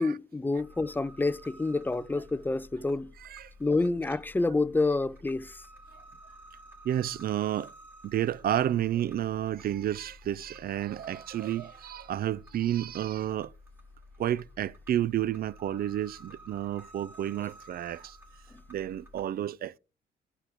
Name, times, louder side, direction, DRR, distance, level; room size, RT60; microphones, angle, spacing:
voice 1, 0.0-3.1 3.6-5.6, left 3 dB, 10° left, 0.4 m, -28 dB
sound 1, 0.6-19.2, equal, 10° right, 2.8 m, -52 dB
voice 2, 6.8-7.7 8.0-13.5 14.2-18.2 18.7-19.8, right 11 dB, 50° right, 0.4 m, -31 dB
12.5 x 4.6 x 3.5 m
cardioid pair, 90°, 20 cm